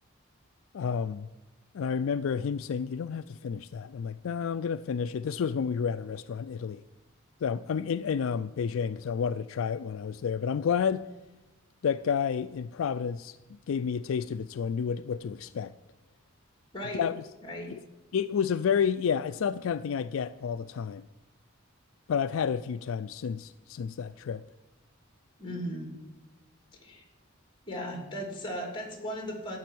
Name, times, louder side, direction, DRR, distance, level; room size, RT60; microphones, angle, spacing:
voice 1, 0.7-1.3 1.7-6.8 7.4-11.1 11.8-13.4 13.7-15.7 16.9-17.2 17.7-17.8 18.1-21.0 22.1-24.4, left 7 dB, 70° left, 0.4 m, -30 dB
voice 2, 16.7-17.0 17.4-17.7 25.4-26.0 26.7-27.0 27.7-29.6, equal, 25° left, 2.7 m, -37 dB
13.5 x 6.1 x 9.3 m
head